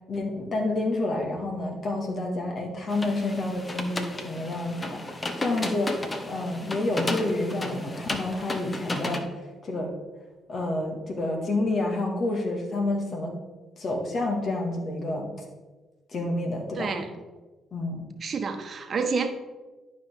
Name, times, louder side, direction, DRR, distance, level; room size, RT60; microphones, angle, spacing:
voice 1, 0.1-9.3 9.6-9.9 10.5-13.3 13.8-15.3 16.1-16.9 17.7-18.0, left 2 dB, 50° left, 1 dB, 1.9 m, -29 dB
sound 1, 2.9-9.2, left 2 dB, 30° left, 1.1 m, -34 dB
voice 2, 16.7-17.1 18.2-19.3, right 5 dB, 50° right, 6 dB, 1.1 m, -28 dB
11.5 x 5.3 x 3.6 m, 1.2 s
supercardioid pair, 65°, 0 cm